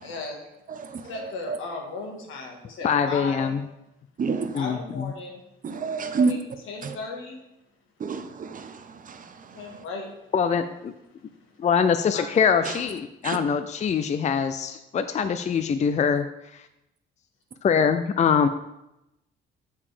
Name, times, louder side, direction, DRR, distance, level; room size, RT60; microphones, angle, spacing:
voice 1, 0.0-0.4 1.0-3.6 4.5-5.4 6.3-7.4 9.6-10.1 10.4-10.6 12.1-12.2, left 3 dB, 85° left, 1 dB, 1.8 m, -36 dB
voice 2, 2.8-3.6 4.5-5.1 10.3-10.9 11.6-16.3 16.5-16.6 17.6-18.5, left 6 dB, 35° left, 10 dB, 0.4 m, -23 dB
voice 3, 4.2-4.5 5.6-6.3 6.8-7.0 8.0-8.7 13.2-13.4, right 4 dB, 45° right, 8 dB, 0.8 m, -27 dB
6.8 x 5.5 x 4.9 m, 0.88 s
cardioid pair, 90°, 20 cm